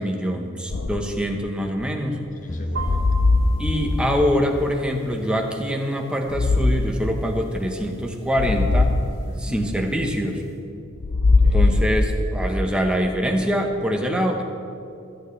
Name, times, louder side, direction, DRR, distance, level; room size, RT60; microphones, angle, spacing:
voice 1, 0.0-2.2 3.6-9.0 9.4-10.4 11.5-14.4, equal, 5° right, 2 dB, 1.0 m, -24 dB
sound 1, 0.7-1.2 2.7-4.3 6.3-6.9 8.4-9.1 11.0-12.4, left 3 dB, 80° left, 0.7 m, -20 dB
voice 2, 2.4-3.3 9.3-9.7 11.2-11.7, left 1 dB, 40° left, 6 dB, 0.8 m, -41 dB
sound 2, 2.5-4.7, equal, 20° left, 0.5 m, -33 dB
sound 3, 2.7-10.6, right 3 dB, 50° right, 3.9 m, -42 dB
27.5 x 9.3 x 3.3 m, 2.7 s
head